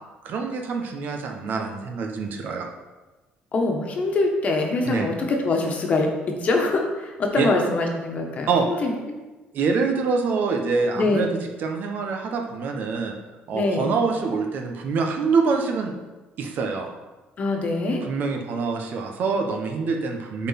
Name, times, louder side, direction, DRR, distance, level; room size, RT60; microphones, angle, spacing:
voice 1, 0.2-2.7 4.9-5.1 7.4-7.5 8.5-8.8 9.5-11.3 11.6-13.1 13.5-15.9 16.4-16.9 18.0-20.5, right 4 dB, 55° right, 3 dB, 1.2 m, -25 dB
voice 2, 3.5-8.9 10.9-11.3 13.5-13.9 17.4-18.0, left 2 dB, 40° left, 2 dB, 1.4 m, -24 dB
9.2 x 4.2 x 5.9 m, 1.2 s
cardioid pair, 135°, 4 cm